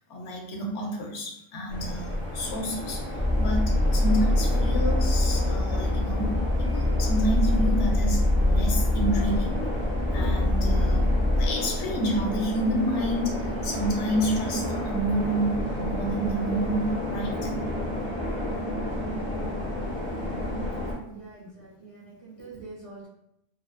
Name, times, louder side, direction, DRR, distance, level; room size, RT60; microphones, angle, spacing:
voice 1, 0.1-9.7 10.1-11.1 11.4-17.5, right 1 dB, 75° left, 0 dB, 0.9 m, -29 dB
sound 1, 1.7-20.9, left 1 dB, 20° left, 1.2 m, -31 dB
sound 2, 3.2-11.5, left 1 dB, 35° left, 0.3 m, -24 dB
voice 2, 21.0-23.1, right 3 dB, 40° right, -8 dB, 0.5 m, -45 dB
2.4 x 2.3 x 2.3 m, 0.78 s
omnidirectional pair, 1.3 m